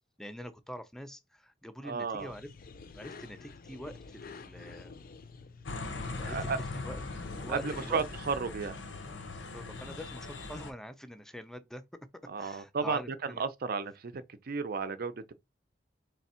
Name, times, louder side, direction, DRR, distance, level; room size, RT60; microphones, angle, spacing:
voice 1, 0.2-2.5 2.9-4.9 6.2-6.5 6.8-7.0 7.4-8.0 9.5-11.8 12.4-13.4, equal, 5° left, 0.5 m, -44 dB
voice 2, 1.8-2.3 6.2-6.6 7.5-8.8 12.3-15.3, right 5 dB, 55° right, 0.5 m, -33 dB
sound 1, 2.2-8.4, left 4 dB, 50° left, 0.5 m, -49 dB
sound 2, 5.7-10.7, left 3 dB, 80° left, 0.9 m, -40 dB
3.4 x 3.3 x 4.3 m
head